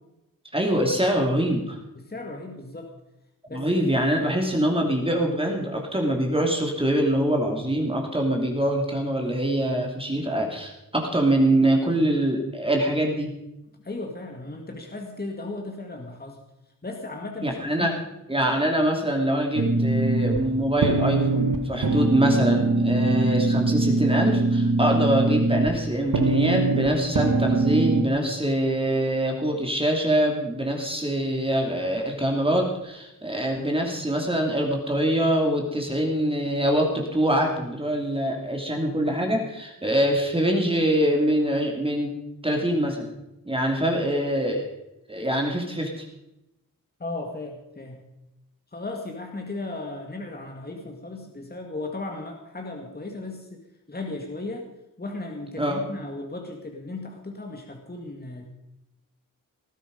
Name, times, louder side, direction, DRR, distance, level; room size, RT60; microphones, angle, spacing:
voice 1, 0.5-1.8 3.5-13.3 17.4-17.9 18.3-42.1 42.4-43.1 43.5-44.7 45.1-46.0 55.6-55.8, right 1 dB, 15° right, 1 dB, 2.6 m, -24 dB
voice 2, 2.0-2.9 3.5-3.7 13.8-16.4 16.8-18.1 47.0-48.0 48.7-53.6 53.9-54.7 55.0-58.5, left 2 dB, 30° left, 2 dB, 2.2 m, -36 dB
sound 1, 19.5-28.0, right 3 dB, 80° right, 1.6 m, -23 dB
19.0 x 12.0 x 5.2 m, 0.91 s
wide cardioid pair, 90°, 33 cm